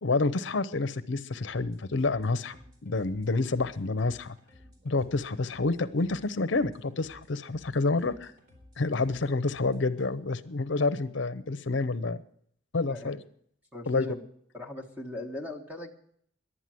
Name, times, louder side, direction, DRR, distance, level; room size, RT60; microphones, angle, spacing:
voice 1, 0.0-4.4 4.8-8.3 8.8-12.2 12.7-13.2 13.9-14.2, left 3 dB, 65° left, 14 dB, 0.7 m, -28 dB
sound 1, 1.3-10.1, left 1 dB, 50° right, 4.1 m, -56 dB
voice 2, 13.7-14.2 14.5-15.9, left 1 dB, 10° right, 3 dB, 1.4 m, -39 dB
11.0 x 9.9 x 7.6 m, 0.66 s
head